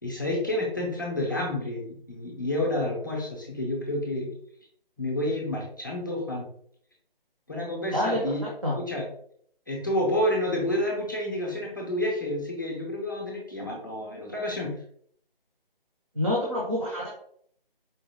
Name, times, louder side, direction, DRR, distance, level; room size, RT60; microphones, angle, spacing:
voice 1, 0.0-4.3 5.0-6.5 7.5-8.4 8.8-9.0 9.7-14.7, left 1 dB, 20° left, -2 dB, 0.6 m, -29 dB
voice 2, 7.9-8.8 16.1-17.1, left 1 dB, 35° right, -4 dB, 0.7 m, -28 dB
4.4 x 2.1 x 3.3 m, 0.63 s
figure-of-eight pair, 170°, 29 cm